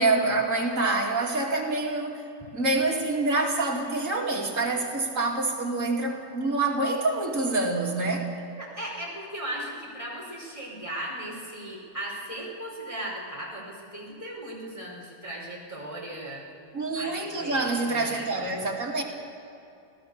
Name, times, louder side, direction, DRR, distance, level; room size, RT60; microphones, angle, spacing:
voice 1, 0.0-2.2 2.5-8.3 16.7-19.0, right 2 dB, 35° right, -1 dB, 3.0 m, -26 dB
voice 2, 8.6-16.4 16.9-18.3, right 1 dB, 15° left, -4 dB, 4.7 m, -37 dB
27.0 x 17.0 x 6.9 m, 2.6 s
omnidirectional pair, 2.4 m